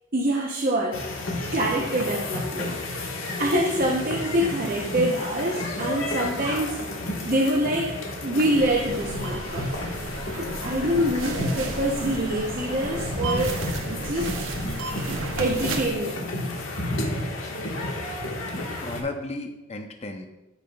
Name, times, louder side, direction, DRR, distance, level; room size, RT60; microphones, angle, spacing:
voice 1, 0.1-1.0 1.5-2.8 3.4-9.7 10.3-14.5 15.4-16.2, right 1 dB, 45° right, -2 dB, 0.7 m, -26 dB
sound 1, 0.9-19.0, left 1 dB, 90° left, 1.5 m, -31 dB
sound 2, 8.5-15.9, right 3 dB, 75° right, 0.9 m, -34 dB
voice 2, 18.5-20.3, left 2 dB, 30° left, 4 dB, 0.6 m, -35 dB
14.0 x 5.5 x 2.3 m, 1.0 s
head